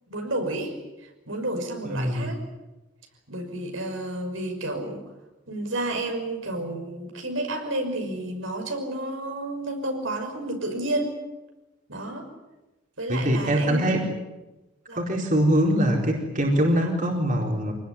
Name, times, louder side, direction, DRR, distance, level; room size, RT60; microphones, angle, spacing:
voice 1, 0.1-0.8 1.0-2.4 3.3-5.0 5.5-11.2 11.9-12.3 13.0-13.9 14.9-15.0, right 1 dB, 85° right, 3 dB, 6.0 m, -31 dB
voice 2, 1.8-2.3 13.1-14.1 14.9-17.7, equal, 40° right, 0 dB, 4.3 m, -23 dB
26.5 x 19.5 x 9.8 m, 1.1 s
head